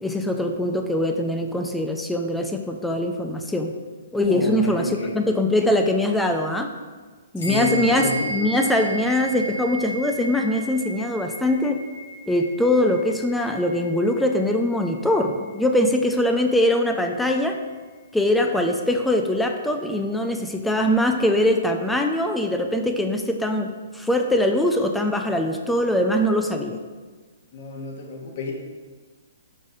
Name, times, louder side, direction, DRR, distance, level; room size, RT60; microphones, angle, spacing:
voice 1, 0.0-3.7 4.1-6.7 7.3-11.8 12.3-17.6 18.1-26.8, left 1 dB, 5° left, 4 dB, 0.3 m, -22 dB
voice 2, 4.1-5.1 7.4-8.6 27.5-28.5, left 2 dB, 50° left, 1 dB, 0.9 m, -30 dB
sound 1, 7.4-17.1, right 2 dB, 80° left, 1.4 m, -35 dB
4.9 x 4.1 x 2.6 m, 1.4 s
hypercardioid pair, 140°, 0 cm